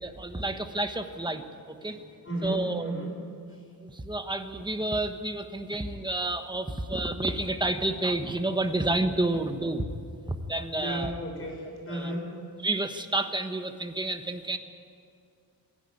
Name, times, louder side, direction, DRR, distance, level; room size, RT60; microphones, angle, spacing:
voice 1, 0.0-2.0 2.4-2.9 3.8-9.8 10.5-11.1 11.9-12.1 12.6-14.6, right 2 dB, 10° right, 7 dB, 1.3 m, -30 dB
voice 2, 1.8-3.1 5.6-5.9 6.6-6.7 7.9-8.0 8.6-8.7 10.7-12.3, right 1 dB, 35° left, 0 dB, 6.5 m, -35 dB
25.5 x 10.5 x 9.6 m, 2.4 s
wide cardioid pair, 125°, 36 cm